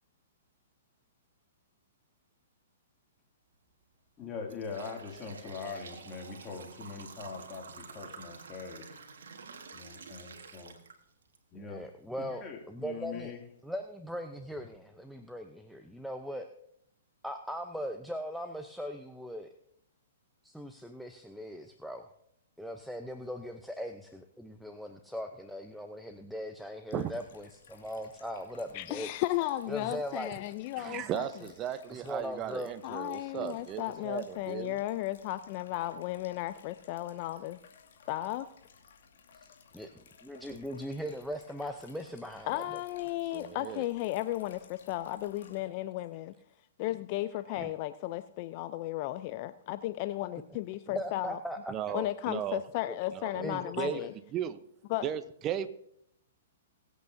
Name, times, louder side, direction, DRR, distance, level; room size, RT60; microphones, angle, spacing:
sound 1, 3.5-3.7 4.2-11.4 11.8-11.9 12.8-12.9 13.4-13.5 13.9-14.1, right 5 dB, 75° right, 1.6 m, -49 dB
voice 1, 4.2-8.8 9.7-10.7 11.5-11.8 12.2-13.4, left 5 dB, 25° left, 1 dB, 2.6 m, -42 dB
voice 2, 11.5-13.3 13.6-16.5 17.2-19.5 20.4-22.1 22.6-29.1 29.7-30.3 31.9-32.7 33.4-33.5 39.7-42.8 50.9-51.7 52.9-53.0 53.4-54.1, equal, ahead, 5 dB, 0.7 m, -39 dB
sound 2, 26.9-45.6, left 6 dB, 70° left, 2.4 m, -58 dB
voice 3, 28.7-31.3 32.8-37.6 38.1-38.5 42.5-46.3 46.8-51.4 51.9-54.1 54.9-55.1, left 15 dB, 45° left, 13 dB, 0.5 m, -34 dB
voice 4, 30.8-34.8 43.3-43.9 47.5-47.7 50.9-51.0 51.7-52.6 53.1-53.5 53.8-54.0 54.3-54.6 55.0-55.7, right 10 dB, 30° right, 12 dB, 0.8 m, -36 dB
22.5 x 8.2 x 2.7 m, 0.74 s
hypercardioid pair, 130°, 0 cm